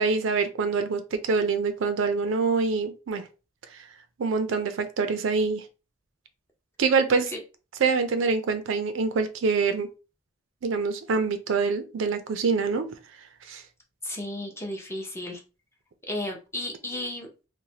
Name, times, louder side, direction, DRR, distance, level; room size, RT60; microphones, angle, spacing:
voice 1, 0.0-3.2 4.2-5.6 6.8-7.3 7.8-9.9 10.6-12.8 13.5-13.6, right 4 dB, 75° right, 9 dB, 0.4 m, -25 dB
voice 2, 14.0-15.4 16.1-17.3, left 1 dB, 15° left, 1 dB, 0.6 m, -33 dB
3.1 x 2.1 x 2.7 m, 0.31 s
head